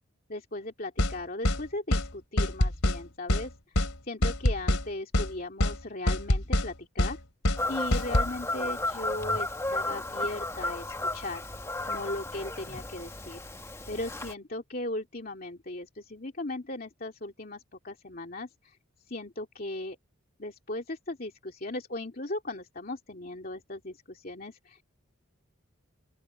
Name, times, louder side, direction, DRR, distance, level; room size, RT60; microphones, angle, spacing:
voice 1, 0.3-3.5 4.0-7.2 7.7-11.4 11.9-13.4 13.9-18.8 19.1-20.0 20.4-24.8, left 2 dB, 45° left, 2.7 m, -37 dB
sound 1, 1.0-1.2 1.5-1.6 1.9-2.1 2.4-3.0 3.3-3.5 3.8-3.9 4.2-4.8 5.1-5.3 5.6-5.8 6.1-6.7 7.0-7.2 7.5-7.6 7.9-8.3, left 1 dB, 85° left, 3.0 m, -25 dB
Fowl / Bird vocalization bird call bird song, 7.6-14.3, left 2 dB, 15° left, 1.6 m, -33 dB
open air
head